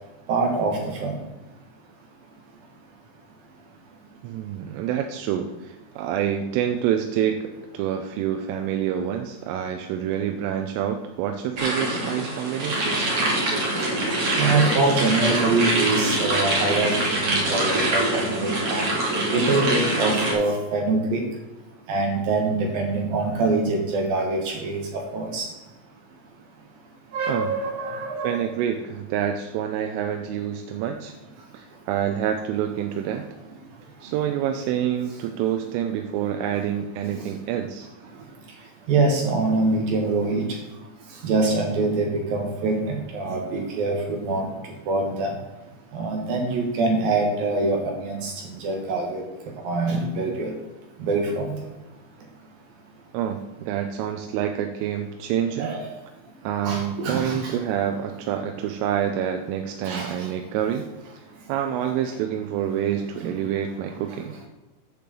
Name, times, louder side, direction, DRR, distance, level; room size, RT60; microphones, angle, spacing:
voice 1, 0.3-1.1 14.4-18.9 19.3-21.2 21.9-25.5 27.1-28.4 37.0-37.3 38.9-40.6 41.2-44.5 44.9-45.3 45.9-48.3 48.6-49.2 49.6-50.5 51.0-51.6 55.6-55.9 56.6-57.6 59.9-60.3 63.2-63.3, right 3 dB, 65° right, 2 dB, 2.4 m, -24 dB
voice 2, 4.2-13.0 27.3-27.5 28.2-31.1 31.5-33.3 34.0-37.9 53.1-55.7 56.4-60.9 61.5-64.3, right 9 dB, 85° right, 5 dB, 3.2 m, -27 dB
sound 1, 11.6-20.3, right 1 dB, 40° right, 2.2 m, -24 dB
8.7 x 6.9 x 7.5 m, 1.1 s
omnidirectional pair, 5.9 m